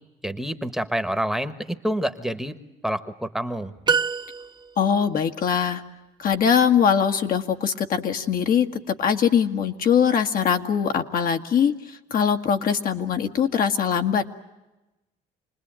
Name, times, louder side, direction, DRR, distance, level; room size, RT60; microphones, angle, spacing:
voice 1, 0.2-2.6 2.8-3.7, equal, ahead, 9 dB, 1.3 m, -27 dB
sound 1, 3.9-5.0, right 6 dB, 25° right, 0.9 m, -25 dB
voice 2, 4.8-5.8 6.2-14.3, left 7 dB, 55° left, 5 dB, 1.8 m, -22 dB
28.0 x 20.5 x 8.9 m, 1.0 s
cardioid pair, 110°, 17 cm